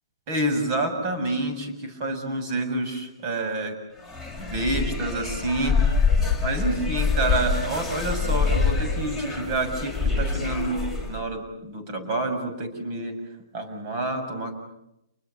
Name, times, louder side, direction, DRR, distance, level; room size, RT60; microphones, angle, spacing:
voice 1, 0.3-3.8 4.4-5.8 6.2-10.8 11.1-13.1 13.5-14.5, right 2 dB, 40° right, 6 dB, 7.4 m, -28 dB
sound 1, 4.0-11.2, left 5 dB, 10° right, 6.8 m, -25 dB
29.5 x 21.5 x 8.6 m, 0.84 s
hypercardioid pair, 150°, 2 cm